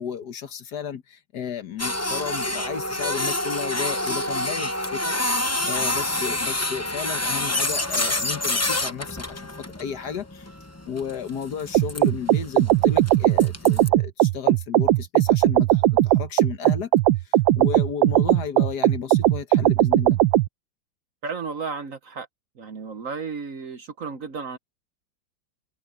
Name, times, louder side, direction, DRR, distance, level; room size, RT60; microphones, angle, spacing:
voice 1, 0.0-10.5 10.9-16.9 17.2-20.2, left 7 dB, 60° left, 1.6 m, -33 dB
Printer, 1.8-13.9, left 1 dB, 20° left, 0.4 m, -28 dB
sound 1, 11.7-20.5, right 14 dB, 85° right, 1.4 m, -19 dB
voice 2, 21.2-22.3 22.6-24.6, right 5 dB, 50° right, 1.2 m, -33 dB
omnidirectional pair, 2.1 m